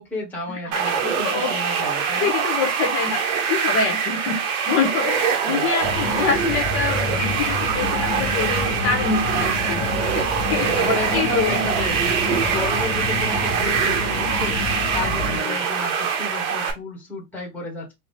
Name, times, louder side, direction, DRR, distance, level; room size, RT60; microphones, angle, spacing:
voice 1, 0.0-2.3 5.4-5.7 10.6-17.9, left 2 dB, 5° left, -2 dB, 1.1 m, -32 dB
sound 1, 0.7-16.7, right 6 dB, 60° right, 1.2 m, -23 dB
voice 2, 1.0-1.5 2.2-3.2 3.5-10.7 11.1-11.6 15.2-15.6, left 5 dB, 30° left, 3 dB, 1.0 m, -26 dB
sound 2, 5.8-15.4, left 4 dB, 70° left, 1.2 m, -29 dB
4.1 x 2.3 x 3.4 m, 0.20 s
supercardioid pair, 160°, 43 cm